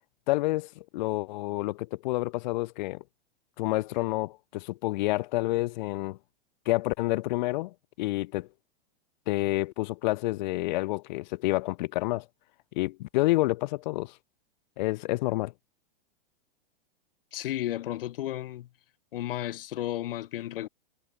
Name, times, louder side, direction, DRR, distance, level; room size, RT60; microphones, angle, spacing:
voice 1, 0.3-3.0 3.6-6.2 6.7-8.5 9.3-12.3 12.8-14.2 14.8-15.5, left 19 dB, 50° left, 1.9 m, -29 dB
voice 2, 17.3-18.7 19.1-20.7, left 13 dB, 65° left, 1.9 m, -33 dB
supercardioid pair, 155°, 30 cm